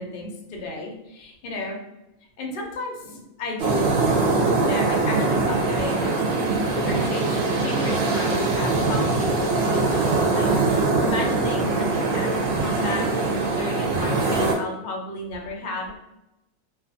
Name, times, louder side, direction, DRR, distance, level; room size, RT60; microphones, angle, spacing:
voice 1, 0.0-1.8 2.4-3.9 4.3-6.1 6.7-13.1 13.4-16.0, left 2 dB, 60° left, 0 dB, 0.5 m, -33 dB
sound 1, 3.6-14.5, right 3 dB, 70° right, 0.9 m, -22 dB
2.5 x 2.4 x 2.5 m, 0.91 s
omnidirectional pair, 1.5 m